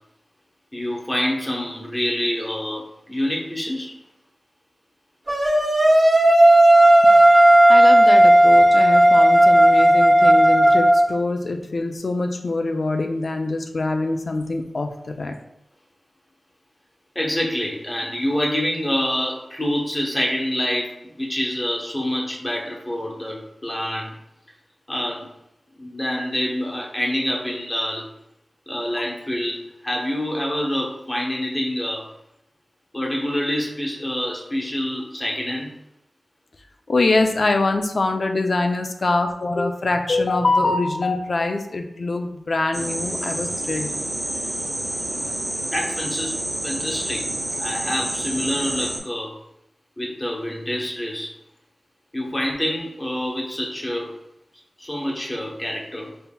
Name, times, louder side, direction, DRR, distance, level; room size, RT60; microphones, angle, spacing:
voice 1, 0.7-3.9 17.1-20.9 21.2-24.1 24.9-25.3 25.8-28.1 28.7-32.1 32.9-35.7 45.7-46.4 46.6-47.3 47.6-49.3 50.0-51.3 52.1-54.1 54.8-56.1, left 1 dB, 20° left, -2 dB, 1.0 m, -26 dB
sound 1, 5.3-11.0, right 1 dB, 35° right, 1.2 m, -13 dB
voice 2, 7.7-15.4 36.9-43.9, left 2 dB, 60° left, 5 dB, 0.4 m, -24 dB
sound 2, 42.7-49.0, right 1 dB, 20° right, 0.8 m, -28 dB
5.4 x 2.8 x 2.2 m, 0.82 s
wide cardioid pair, 85°, 0 cm